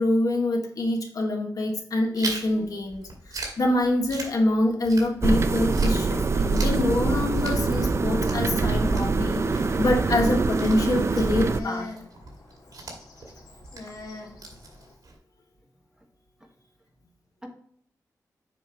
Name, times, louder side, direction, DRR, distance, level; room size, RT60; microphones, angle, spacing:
voice 1, 0.0-11.9, left 1 dB, 65° left, 2 dB, 1.5 m, -25 dB
Chewing mastication, 2.2-5.4 5.7-15.2, right 3 dB, 65° right, 2.3 m, -40 dB
sound 1, 5.2-11.6, right 3 dB, 45° right, 0.5 m, -24 dB
sound 2, 7.3-14.9, left 2 dB, 85° left, 2.7 m, -45 dB
voice 2, 12.2-13.0 16.0-16.1 16.4-16.5 17.4-17.5, equal, 10° right, 2 dB, 1.4 m, -51 dB
7.4 x 5.4 x 2.9 m, 0.63 s
wide cardioid pair, 95°, 7 cm